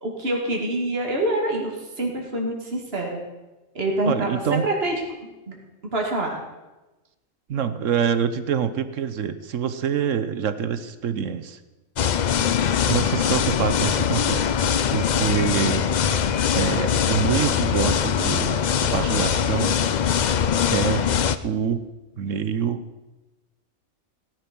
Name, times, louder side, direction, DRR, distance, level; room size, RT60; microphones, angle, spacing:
voice 1, 0.0-3.2 3.7-5.0 5.2-5.6 5.9-6.4, right 1 dB, 45° right, 0 dB, 2.6 m, -26 dB
voice 2, 4.1-4.7 7.5-11.6 12.9-14.6 14.9-15.8 16.5-19.8 20.7-21.1 21.4-21.9 22.2-22.8, right 7 dB, 65° right, 12 dB, 1.2 m, -25 dB
sound 1, 12.0-21.4, left 8 dB, 70° left, 0.4 m, -22 dB
16.5 x 11.5 x 6.1 m, 1.1 s
omnidirectional pair, 1.5 m